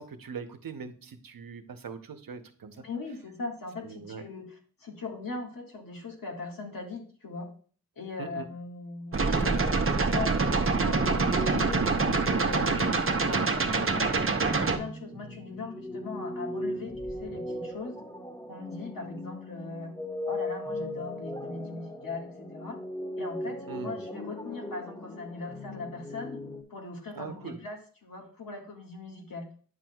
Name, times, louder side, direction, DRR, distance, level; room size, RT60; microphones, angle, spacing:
voice 1, 0.0-2.8 3.8-4.2 8.2-8.5 13.2-13.5 23.7-24.0 27.1-27.6, right 6 dB, 85° right, 8 dB, 0.7 m, -41 dB
voice 2, 2.8-7.5 8.0-14.3 14.6-18.0 18.5-19.9 20.3-22.8 23.2-26.4 26.7-29.5, left 3 dB, 80° left, 0 dB, 1.8 m, -40 dB
sound 1, 9.1-14.8, right 4 dB, 40° right, 0.7 m, -25 dB
sound 2, 10.9-26.6, left 1 dB, 10° left, 1.2 m, -38 dB
9.4 x 6.1 x 2.3 m, 0.44 s
wide cardioid pair, 80°, 33 cm